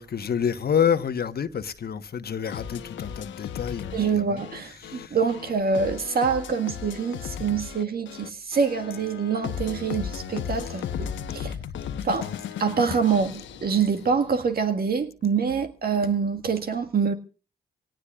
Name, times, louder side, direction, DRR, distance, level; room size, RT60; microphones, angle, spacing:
voice 1, 0.0-4.4 4.8-5.2, left 8 dB, 55° left, 1.2 m, -28 dB
sound 1, 2.5-14.4, left 8 dB, 75° left, 1.1 m, -36 dB
voice 2, 3.9-11.6 12.0-12.3 12.6-17.1, right 5 dB, 50° right, 1.8 m, -25 dB
24.5 x 18.0 x 2.4 m
supercardioid pair, 50°, 19 cm